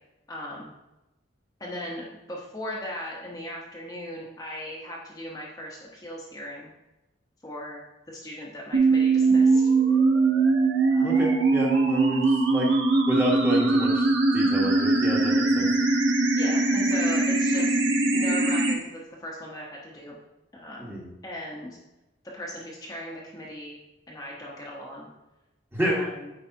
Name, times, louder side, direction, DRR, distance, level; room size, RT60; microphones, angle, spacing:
voice 1, 0.3-0.7 1.6-6.7 7.4-9.7 10.9-11.4 16.3-20.2 20.5-21.0 21.2-21.8 22.3-23.8 24.1-25.1 25.8-26.3, equal, 20° left, -4 dB, 0.9 m, -38 dB
sound 1, 8.7-18.7, right 3 dB, 70° right, 1.0 m, -21 dB
voice 2, 11.0-12.7 13.1-14.1 14.3-15.7 20.8-21.1 25.7-26.0, equal, 10° right, -3 dB, 1.3 m, -29 dB
8.6 x 4.7 x 2.8 m, 0.98 s
head